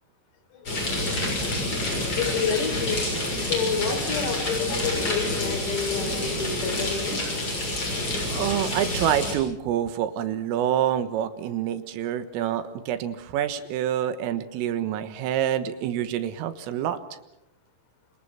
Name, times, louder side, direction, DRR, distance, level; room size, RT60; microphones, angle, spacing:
sound 1, 0.7-9.3, left 1 dB, 25° left, 7.0 m, -28 dB
voice 1, 2.1-7.2, left 6 dB, 80° left, 6 dB, 6.4 m, -29 dB
voice 2, 8.2-17.0, right 10 dB, 80° right, 11 dB, 3.9 m, -27 dB
29.0 x 27.0 x 5.8 m, 0.88 s
omnidirectional pair, 6.0 m